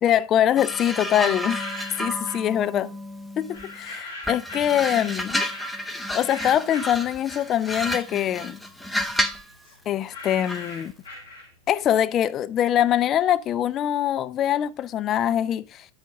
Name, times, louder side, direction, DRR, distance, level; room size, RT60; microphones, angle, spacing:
voice 1, 0.0-1.6 2.0-2.9 3.4-5.4 6.1-8.6 9.9-10.9 11.7-15.9, left 10 dB, 30° left, 0.6 m, -23 dB
sound 1, 0.6-3.8 4.2-9.5 10.5-10.7, equal, ahead, 1.1 m, -31 dB
sound 2, 1.2-2.5 3.5-7.7 8.1-11.8, left 2 dB, 75° left, 7.1 m, -41 dB
9.0 x 8.3 x 3.5 m
figure-of-eight pair, 90°, 0 cm